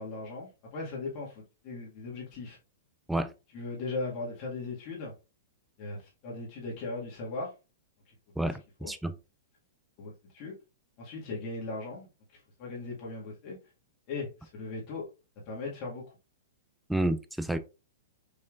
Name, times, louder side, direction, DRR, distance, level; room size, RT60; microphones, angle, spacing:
voice 1, 0.0-2.6 3.5-5.1 5.8-7.5 8.1-8.2 8.8-8.9 10.0-10.5 11.0-13.6 14.1-15.0 15.5-16.1, left 3 dB, 45° left, 1.8 m, -38 dB
voice 2, 8.4-9.1 16.9-17.6, right 1 dB, 5° right, 0.4 m, -30 dB
5.5 x 3.2 x 2.5 m
hypercardioid pair, 110°, 0 cm